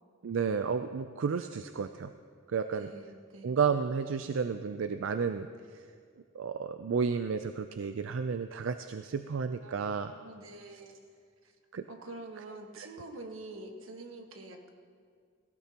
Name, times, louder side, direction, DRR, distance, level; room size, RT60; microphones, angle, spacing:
voice 1, 0.2-2.1 2.5-2.9 3.4-5.5 6.3-10.1 11.7-11.8 12.8-12.9, right 6 dB, 70° right, 9 dB, 0.4 m, -32 dB
voice 2, 2.7-3.5 9.6-11.0 11.4-11.5 11.9-14.7, right 2 dB, 85° right, 3 dB, 1.4 m, -46 dB
18.0 x 16.0 x 2.9 m, 2.1 s
head